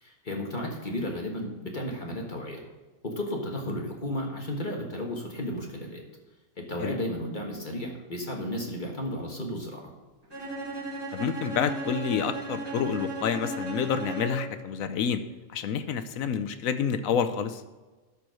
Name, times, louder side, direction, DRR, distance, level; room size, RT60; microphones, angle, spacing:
voice 1, 0.0-2.6 3.0-6.0 6.6-9.9, left 1 dB, 35° left, 0 dB, 1.5 m, -33 dB
Bowed string instrument, 10.3-14.6, right 2 dB, 15° right, 1.9 m, -35 dB
voice 2, 11.1-15.2 15.5-17.6, left 7 dB, 70° left, 10 dB, 1.0 m, -28 dB
12.0 x 4.5 x 6.3 m, 1.3 s
omnidirectional pair, 1.5 m